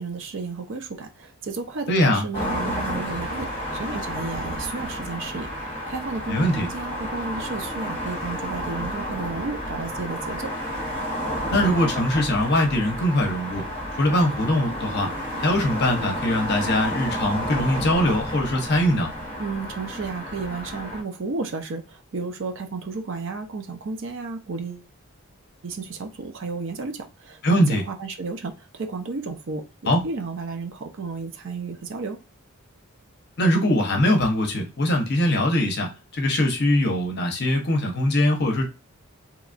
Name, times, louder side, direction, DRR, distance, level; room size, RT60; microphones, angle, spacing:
voice 1, 0.0-10.5 19.4-24.9 25.6-32.2, right 4 dB, 55° right, 0.5 m, -33 dB
voice 2, 1.9-2.2 6.3-6.7 11.5-13.6 14.0-15.1 15.4-19.1 27.4-27.8 29.9-30.0 33.4-38.7, left 1 dB, 45° left, 0.7 m, -22 dB
sound 1, 2.3-21.0, equal, 25° left, 1.0 m, -31 dB
2.9 x 2.3 x 2.4 m
head